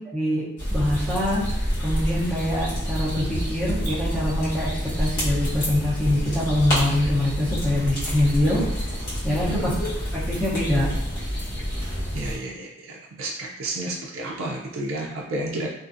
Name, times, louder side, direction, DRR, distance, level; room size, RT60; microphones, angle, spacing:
voice 1, 0.1-0.4 0.7-1.4 1.8-4.7 5.0-8.6 9.2-9.7 10.1-10.9, left 1 dB, 5° left, -9 dB, 0.6 m, -24 dB
sound 1, 0.6-12.4, equal, 60° left, 1.2 m, -28 dB
voice 2, 9.3-9.7 12.1-12.7 13.2-15.7, right 2 dB, 90° right, -2 dB, 0.4 m, -31 dB
2.5 x 2.5 x 2.5 m, 0.84 s
head